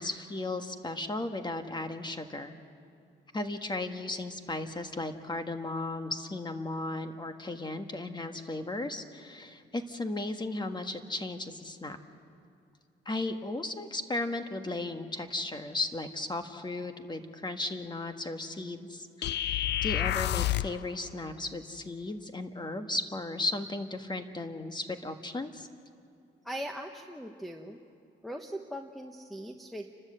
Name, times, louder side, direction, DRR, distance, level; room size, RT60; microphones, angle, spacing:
voice 1, 0.0-2.5 3.3-12.0 13.0-25.7, left 2 dB, 20° left, 7 dB, 1.5 m, -35 dB
sound 1, 19.2-20.8, left 13 dB, 60° left, 0.4 m, -29 dB
voice 2, 26.4-27.8 28.2-29.9, equal, ahead, 4 dB, 1.2 m, -40 dB
29.5 x 13.0 x 8.0 m, 2.6 s
cardioid pair, 90°, 20 cm